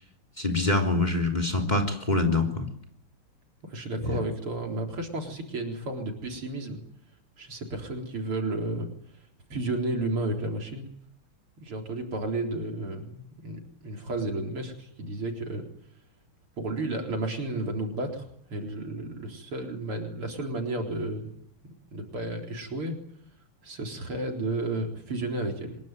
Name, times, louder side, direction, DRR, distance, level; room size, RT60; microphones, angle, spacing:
voice 1, 0.4-2.7 4.1-4.2, left 2 dB, 20° left, 5 dB, 3.6 m, -25 dB
voice 2, 3.6-6.8 7.4-8.9 9.5-10.9 11.6-15.7 16.6-21.3 21.6-23.0 23.6-25.8, right 2 dB, 75° right, 3 dB, 4.9 m, -32 dB
25.0 x 21.5 x 9.4 m, 0.71 s
omnidirectional pair, 2.4 m